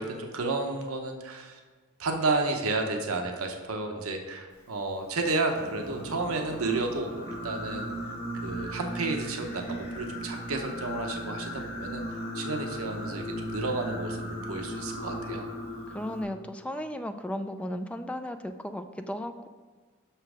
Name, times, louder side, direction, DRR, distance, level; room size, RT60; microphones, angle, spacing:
voice 1, 0.0-1.6 2.0-7.9 8.4-12.0 12.3-15.5, right 3 dB, 80° right, 3 dB, 0.8 m, -31 dB
Singing, 5.5-16.2, equal, 50° left, 1.9 m, -37 dB
voice 2, 15.9-19.5, left 1 dB, 5° left, 7 dB, 0.3 m, -35 dB
6.3 x 5.7 x 4.8 m, 1.5 s
head